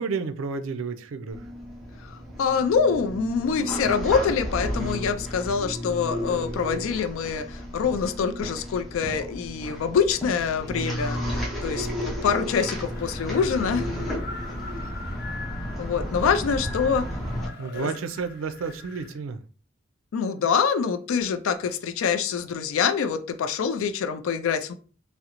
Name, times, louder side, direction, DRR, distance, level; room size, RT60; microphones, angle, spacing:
voice 1, 0.0-1.4 17.6-19.4, right 5 dB, 80° right, 10 dB, 0.4 m, -31 dB
sound 1, 1.3-17.5, equal, ahead, 0.6 m, -33 dB
voice 2, 2.0-13.9 15.8-17.1 17.4-17.9 20.1-24.7, left 6 dB, 80° left, 9 dB, 0.3 m, -25 dB
Wind, 12.8-19.2, left 3 dB, 50° left, 0.8 m, -42 dB
3.7 x 2.0 x 2.9 m, 0.38 s
head